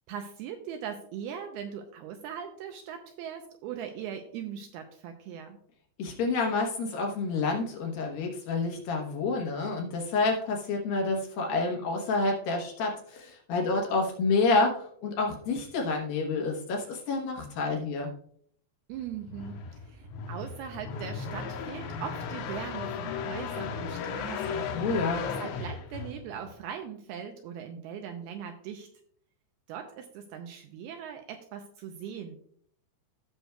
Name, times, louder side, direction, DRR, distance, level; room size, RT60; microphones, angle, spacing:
voice 1, 0.1-5.6 18.9-24.7 25.2-28.9 29.7-32.4, right 8 dB, 80° right, 5 dB, 2.3 m, -40 dB
voice 2, 6.0-18.1 24.7-25.3, left 3 dB, 70° left, 1 dB, 2.5 m, -28 dB
sound 1, 19.0-26.6, left 6 dB, 90° left, 3.2 m, -36 dB
16.0 x 6.2 x 2.3 m, 0.63 s
omnidirectional pair, 5.0 m